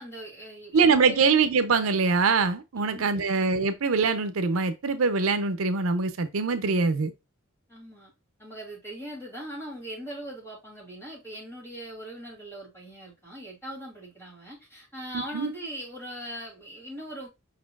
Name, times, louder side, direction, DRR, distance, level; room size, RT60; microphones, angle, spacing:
voice 1, 0.0-1.2 2.8-3.2 7.7-8.1 8.4-17.3, equal, 10° left, 2.7 m, -40 dB
voice 2, 0.7-7.1 15.1-15.5, right 4 dB, 80° right, 0.6 m, -23 dB
5.2 x 4.2 x 2.3 m
head